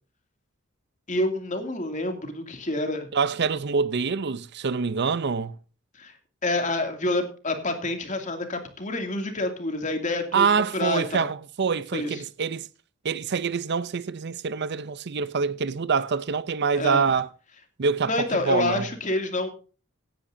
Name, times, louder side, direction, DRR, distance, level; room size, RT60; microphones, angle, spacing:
voice 1, 1.1-3.1 5.9-6.1 6.4-10.5 10.7-11.3 11.9-12.2 16.8-17.0 18.0-19.5, left 2 dB, 35° left, 2.5 m, -28 dB
voice 2, 3.1-5.6 10.3-12.7 13.0-17.3 17.8-18.9, right 5 dB, 50° right, 0.5 m, -25 dB
17.0 x 10.0 x 2.7 m
head